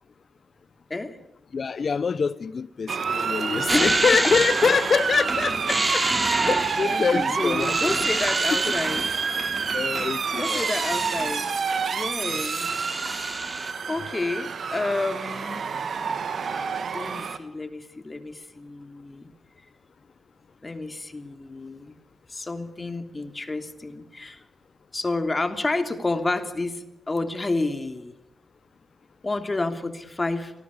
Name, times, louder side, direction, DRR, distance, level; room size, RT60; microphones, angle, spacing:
voice 1, 1.5-6.1 6.4-7.9 9.7-10.6 12.3-12.4, left 5 dB, 55° left, 1.2 m, -25 dB
Motor vehicle (road) / Siren, 2.9-17.4, right 6 dB, 65° right, 2.6 m, -28 dB
voice 2, 3.7-4.2 6.8-9.1 10.4-11.5 11.9-12.8 13.9-15.7 16.9-19.3 20.6-21.9 22.3-24.4 24.9-28.1 29.2-30.5, left 2 dB, 30° left, 3.2 m, -30 dB
sound 1, 3.7-11.6 12.0-13.7, right 2 dB, 25° right, 3.9 m, -29 dB
27.0 x 18.5 x 9.9 m
supercardioid pair, 45°, 0 cm